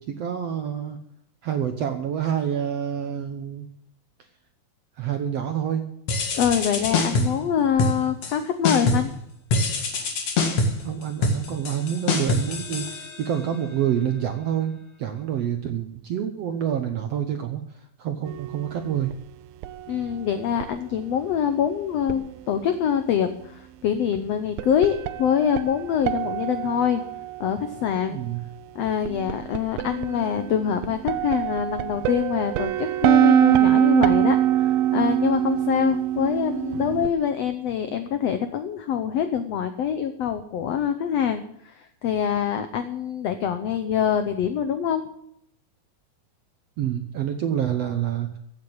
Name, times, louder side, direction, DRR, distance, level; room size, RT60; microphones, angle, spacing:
voice 1, 0.1-1.0 1.4-3.7 5.0-5.8 10.8-19.1 28.1-28.4 46.8-48.4, right 9 dB, 70° right, 7 dB, 1.5 m, -27 dB
sound 1, 6.1-7.4 7.8-8.4 8.6-9.2 9.5-13.5, left 3 dB, 50° left, 2.9 m, -25 dB
voice 2, 6.3-9.1 19.9-27.0 27.4-28.2 28.7-45.0, left 8 dB, 80° left, 9 dB, 1.4 m, -25 dB
sound 2, 18.3-19.1 19.6-20.7 22.1-22.4 24.6-28.2 29.1-37.1, right 12 dB, 85° right, 2.6 m, -24 dB
15.5 x 8.1 x 8.9 m, 0.75 s
omnidirectional pair, 4.1 m